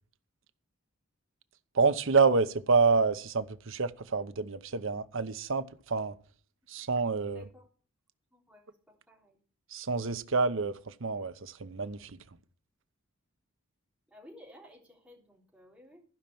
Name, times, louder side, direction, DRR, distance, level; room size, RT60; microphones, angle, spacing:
voice 1, 1.7-6.2 6.7-7.4 9.7-12.2, right 4 dB, 60° right, 0.9 m, -28 dB
voice 2, 7.2-7.7 8.3-9.4 14.1-16.0, left 1 dB, 5° right, 3.5 m, -56 dB
15.0 x 5.7 x 7.1 m
head